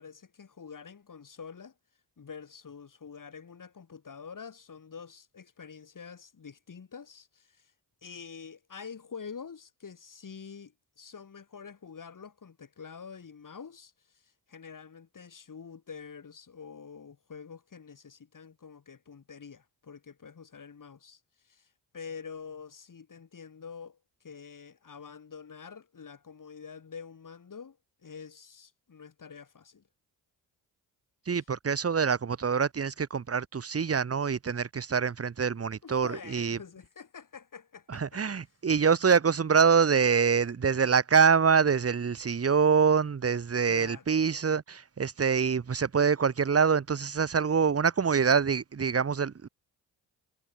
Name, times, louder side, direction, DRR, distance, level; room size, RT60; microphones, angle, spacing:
voice 1, 0.0-1.7 2.2-7.7 8.0-24.0 24.2-29.8 31.3-31.4 35.8-38.2 43.7-44.2, left 6 dB, 45° left, 3.8 m, -46 dB
voice 2, 31.3-36.6 37.9-49.5, right 6 dB, 30° right, 1.3 m, -25 dB
supercardioid pair, 55°, 44 cm